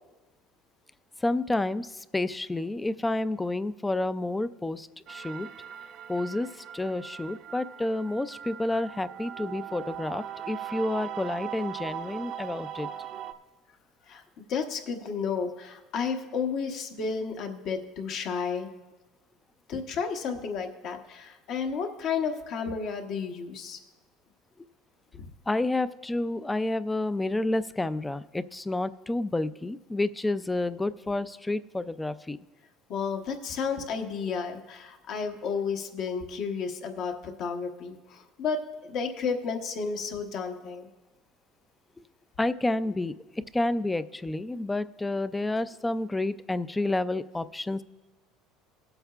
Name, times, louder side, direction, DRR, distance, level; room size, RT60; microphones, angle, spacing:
voice 1, 1.2-5.5 6.1-12.9 25.5-32.4 42.4-47.8, left 2 dB, 10° left, 15 dB, 0.3 m, -30 dB
sound 1, 5.1-13.3, right 10 dB, 50° right, 0.6 m, -40 dB
voice 2, 14.1-18.7 19.7-23.8 25.1-25.2 32.9-40.9, left 5 dB, 55° left, 4 dB, 1.0 m, -32 dB
18.0 x 7.9 x 2.4 m, 1.2 s
supercardioid pair, 120°, 0 cm